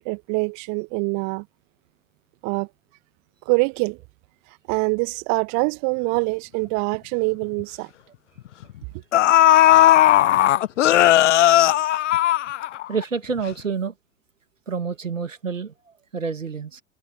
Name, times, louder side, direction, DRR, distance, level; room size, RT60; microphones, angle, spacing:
voice 1, 0.0-1.4 2.4-2.7 3.5-4.0 4.7-7.9, right 33 dB, 45° right, 1.8 m, -24 dB
sound 1, 6.9-7.0 7.4-7.6 8.6-8.7 9.1-13.0 13.4-13.5, left 13 dB, 70° left, 0.6 m, -16 dB
voice 2, 11.4-12.1 12.9-13.9 14.7-16.8, right 5 dB, 80° right, 2.0 m, -29 dB
figure-of-eight pair, 80°, 38 cm